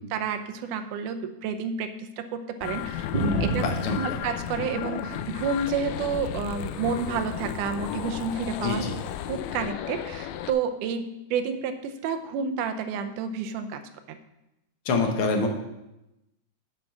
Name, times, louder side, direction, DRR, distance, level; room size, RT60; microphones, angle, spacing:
voice 1, 0.1-3.0 3.4-3.7 4.0-8.8 9.3-13.8 14.1-14.2, right 5 dB, 80° right, 7 dB, 2.2 m, -30 dB
sound 1, 2.6-10.5, left 11 dB, 90° left, 1.5 m, -34 dB
sound 2, 3.1-5.4 5.7-6.7 7.5-7.9 8.9-9.1, right 1 dB, 50° right, 0.5 m, -31 dB
voice 2, 3.6-4.2 8.6-9.0 14.8-15.5, left 3 dB, 60° left, 3 dB, 1.5 m, -26 dB
8.0 x 6.8 x 6.0 m, 0.92 s
omnidirectional pair, 3.7 m